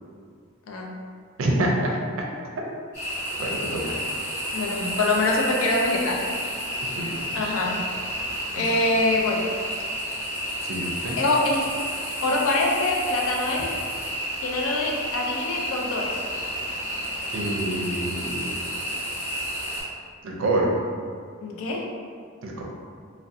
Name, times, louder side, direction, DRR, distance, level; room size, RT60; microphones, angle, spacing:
voice 1, 1.4-2.0 3.4-3.9 7.0-7.1 8.6-8.7 10.6-11.2 17.3-18.5 20.2-20.7 22.4-22.6, right 1 dB, 75° right, -1 dB, 0.4 m, -26 dB
sound 1, 2.9-19.8, equal, 40° left, 1.2 m, -31 dB
voice 2, 4.5-6.2 7.3-7.8 8.6-9.5 11.2-11.7 12.2-13.7 14.4-16.2 21.4-21.8, left 2 dB, 85° left, -1 dB, 0.4 m, -24 dB
2.3 x 2.1 x 2.6 m, 2.1 s
head